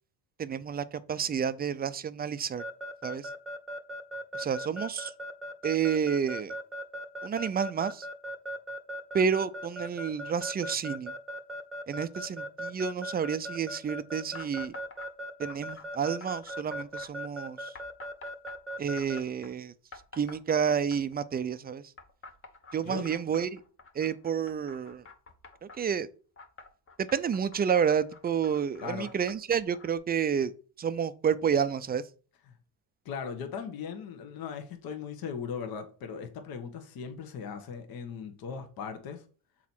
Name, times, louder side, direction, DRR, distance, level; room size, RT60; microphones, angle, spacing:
voice 1, 0.4-2.6 3.0-3.3 4.3-5.1 5.6-6.5 7.2-8.1 9.1-11.2 11.9-14.7 15.4-17.7 18.8-19.7 20.1-21.9 22.7-23.6 23.9-25.0 25.6-26.1 27.1-30.5 30.8-32.0, right 7 dB, 25° right, 0.4 m, -30 dB
Keyboard (musical) / Alarm, 2.6-19.2, equal, ahead, 0.9 m, -38 dB
sound 1, 14.3-15.1 15.5-17.1 17.7-19.5 19.9-21.2 22.0-25.8 26.4-30.0, left 4 dB, 30° left, 0.9 m, -49 dB
voice 2, 28.8-29.1 33.0-39.2, left 6 dB, 60° left, 1.1 m, -38 dB
6.2 x 4.2 x 4.4 m
cardioid pair, 115°, 40 cm